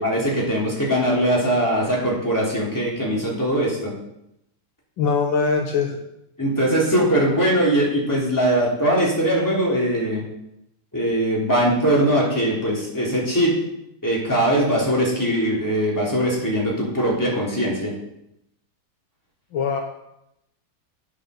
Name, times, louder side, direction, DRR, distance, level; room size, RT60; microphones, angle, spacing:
voice 1, 0.0-3.9 6.4-10.2 10.9-13.6 14.0-17.9, right 1 dB, 10° left, -4 dB, 3.3 m, -21 dB
voice 2, 5.0-6.0 19.5-19.8, left 5 dB, 70° left, 2 dB, 1.9 m, -21 dB
8.9 x 8.2 x 6.6 m, 0.81 s
omnidirectional pair, 2.3 m